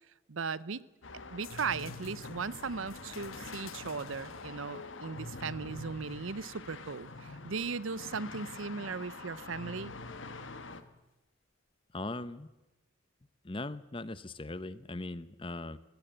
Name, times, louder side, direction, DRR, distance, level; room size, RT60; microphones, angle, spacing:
voice 1, 0.3-0.8 1.3-9.9, right 5 dB, 75° right, 19 dB, 0.7 m, -37 dB
sound 1, 1.0-10.8, left 3 dB, 70° left, 1.4 m, -45 dB
sound 2, 1.4-7.0 7.6-8.5 10.6-10.8, left 12 dB, 85° left, 1.1 m, -56 dB
voice 2, 11.9-12.5 13.4-15.8, left 2 dB, 25° left, 15 dB, 0.7 m, -39 dB
22.0 x 17.5 x 8.0 m, 1.0 s
head